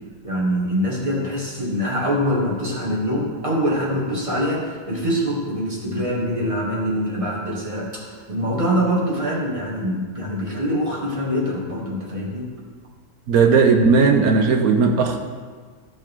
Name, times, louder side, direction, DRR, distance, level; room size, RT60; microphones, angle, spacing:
voice 1, 0.2-12.5, equal, 20° right, -4 dB, 2.0 m, -24 dB
voice 2, 13.3-15.2, right 5 dB, 85° right, 4 dB, 1.2 m, -16 dB
15.0 x 5.3 x 3.6 m, 1.6 s
omnidirectional pair, 1.5 m